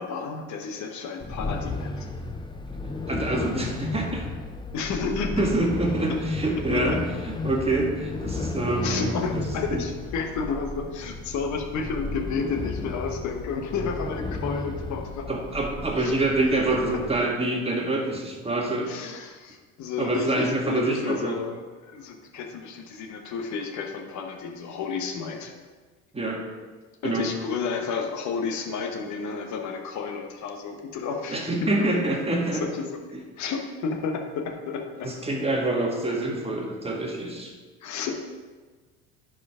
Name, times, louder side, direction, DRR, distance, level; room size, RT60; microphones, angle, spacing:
voice 1, 0.0-2.1 4.7-5.5 6.1-6.2 6.7-7.0 8.8-15.3 16.0-16.2 18.9-25.5 27.0-31.9 32.5-32.9 33.4-35.1 37.8-38.2, left 5 dB, 55° left, 4 dB, 1.3 m, -31 dB
sound 1, 1.2-17.2, left 2 dB, 15° left, 0.7 m, -33 dB
voice 2, 3.1-4.3 5.4-9.4 9.7-9.8 15.3-18.9 20.0-21.4 26.1-26.4 27.0-27.3 31.3-32.6 35.0-37.5, right 2 dB, 15° right, 0 dB, 1.8 m, -26 dB
11.0 x 4.9 x 3.7 m, 1.4 s
hypercardioid pair, 70°, 36 cm